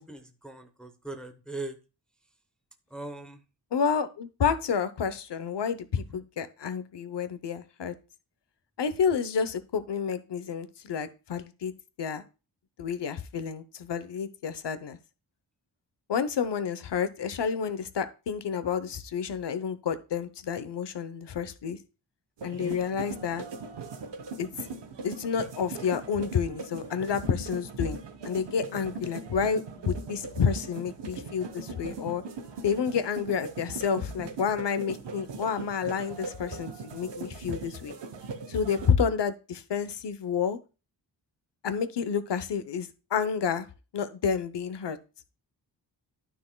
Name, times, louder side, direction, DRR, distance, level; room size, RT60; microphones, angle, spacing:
voice 1, 0.0-1.8 2.9-3.4 5.9-6.2 22.5-22.8, right 2 dB, ahead, 6 dB, 0.8 m, -40 dB
voice 2, 3.7-7.9 8.8-11.7 12.0-12.2 12.8-15.0 16.1-21.8 22.4-23.4 24.4-24.7 25.0-28.0 28.2-32.2 32.6-37.9 38.5-40.6 41.6-43.7 43.9-45.0, left 6 dB, 80° left, 12 dB, 0.8 m, -29 dB
sound 1, 22.4-38.9, right 3 dB, 85° right, 1.0 m, -40 dB
12.0 x 6.0 x 2.2 m, 0.32 s
wide cardioid pair, 135°, 41 cm